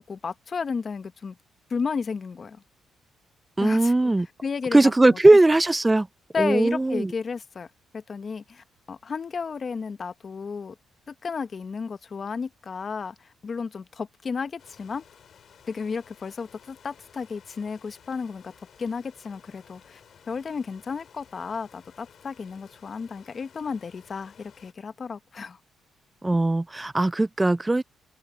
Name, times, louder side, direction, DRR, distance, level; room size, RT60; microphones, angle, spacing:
voice 1, 0.0-1.4 1.7-2.6 3.6-4.1 4.4-5.2 6.3-7.7 7.9-10.7 11.1-15.0 15.7-18.5 18.8-20.0 20.3-25.6, left 5 dB, 40° left, 1.0 m, -33 dB
voice 2, 3.6-4.3 4.7-6.1 6.4-7.1 26.2-27.8, right 2 dB, 15° right, 0.3 m, -19 dB
sound 1, 14.6-24.7, left 8 dB, 60° left, 4.8 m, -55 dB
open air
cardioid pair, 90°, 0 cm